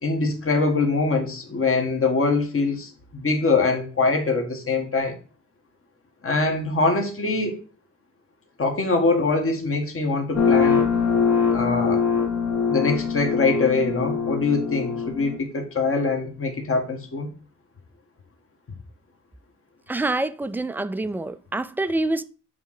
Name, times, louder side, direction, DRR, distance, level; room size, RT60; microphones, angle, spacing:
voice 1, 0.0-5.2 6.2-7.6 8.6-10.8 11.5-12.0 12.7-17.3, left 3 dB, 45° left, 1.6 m, -23 dB
sound 1, 10.4-15.4, left 6 dB, 60° left, 2.1 m, -23 dB
voice 2, 19.9-22.2, right 2 dB, 5° right, 0.4 m, -26 dB
7.2 x 3.8 x 5.7 m
wide cardioid pair, 115°, 31 cm